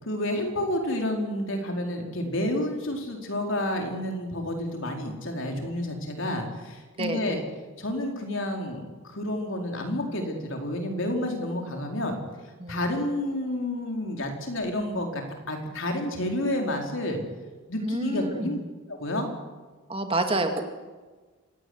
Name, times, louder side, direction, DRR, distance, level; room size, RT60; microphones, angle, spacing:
voice 1, 0.0-7.4 7.8-12.2 12.7-17.2 17.7-18.6 18.9-19.3, left 1 dB, 60° left, 2 dB, 4.5 m, -30 dB
voice 2, 7.0-7.4 12.6-12.8 17.8-18.5 19.9-20.6, right 2 dB, 25° right, 5 dB, 2.1 m, -28 dB
26.0 x 17.0 x 9.7 m, 1.4 s
head